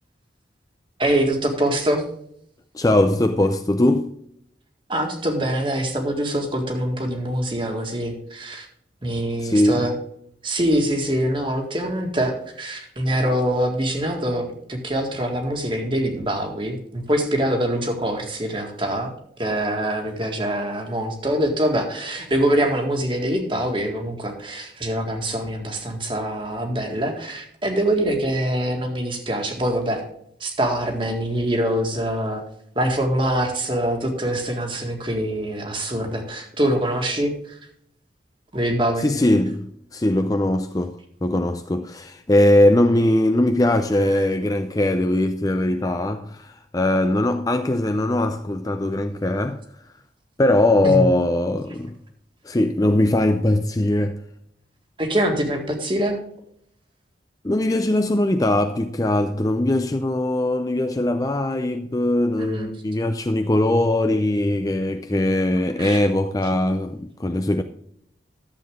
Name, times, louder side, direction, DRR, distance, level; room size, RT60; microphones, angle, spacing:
voice 1, 1.0-2.1 4.9-8.7 9.0-9.9 10.4-19.1 19.4-30.0 30.4-32.4 32.8-37.6 38.5-39.1 50.8-51.1 55.0-56.2 62.4-62.7 65.8-66.1, right 1 dB, 25° right, 1.8 m, -24 dB
voice 2, 2.7-4.1 9.4-9.9 39.0-49.6 50.4-52.0 52.4-54.2 57.4-67.6, left 1 dB, 20° left, 0.4 m, -21 dB
12.0 x 7.8 x 3.7 m
head